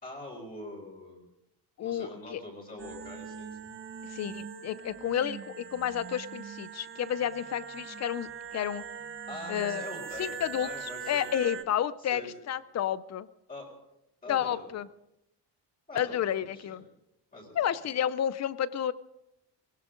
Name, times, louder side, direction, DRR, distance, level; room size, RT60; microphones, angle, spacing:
voice 1, 0.0-1.3 1.8-3.6 9.3-11.6 12.0-12.3 13.5-13.7 14.2-14.7 15.9-16.7 17.3-17.6, left 2 dB, 20° left, -3 dB, 4.0 m, -44 dB
voice 2, 1.8-2.4 4.1-8.8 9.5-9.8 10.2-13.3 14.3-14.9 15.9-16.8 17.6-18.9, left 10 dB, 40° left, 17 dB, 0.6 m, -31 dB
sound 1, 2.8-11.6, right 7 dB, 30° right, 0.8 m, -42 dB
20.0 x 19.0 x 3.8 m, 0.83 s
cardioid pair, 175°, 41 cm